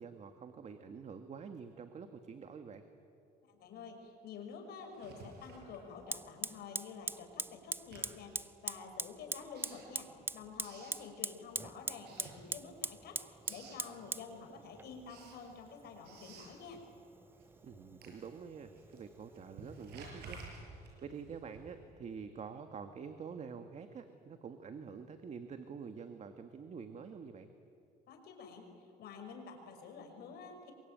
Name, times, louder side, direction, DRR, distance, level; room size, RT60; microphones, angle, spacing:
voice 1, 0.0-2.8 17.6-27.5, right 6 dB, 40° right, 8 dB, 1.6 m, -47 dB
voice 2, 3.5-16.8 28.1-28.7 29.0-30.7, left 5 dB, 70° left, 4 dB, 5.6 m, -49 dB
Writing, 4.9-6.5 6.8-11.6 12.0-13.0 13.2-13.9 14.3-22.0, right 3 dB, 75° right, 7.5 m, -55 dB
Fire, 5.1-5.2 6.1-20.1, right 3 dB, 15° right, 0.6 m, -44 dB
27.0 x 24.0 x 9.2 m, 2.6 s
cardioid pair, 110°, 17 cm